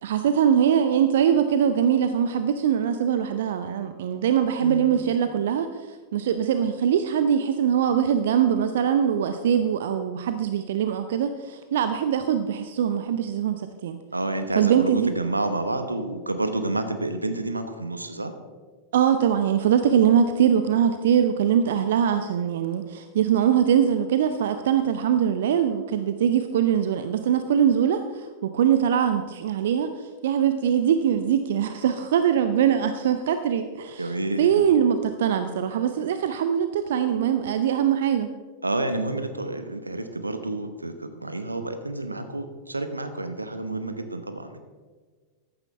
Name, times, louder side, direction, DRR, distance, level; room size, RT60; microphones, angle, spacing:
voice 1, 0.0-14.0 14.6-15.1 18.9-34.1 34.4-38.3, right 8 dB, 60° right, 9 dB, 0.6 m, -22 dB
voice 2, 4.6-4.9 14.1-18.3 34.0-34.6 38.6-44.6, right 2 dB, 80° right, 8 dB, 1.0 m, -29 dB
14.5 x 11.5 x 3.3 m, 1.5 s
figure-of-eight pair, 90°, 0 cm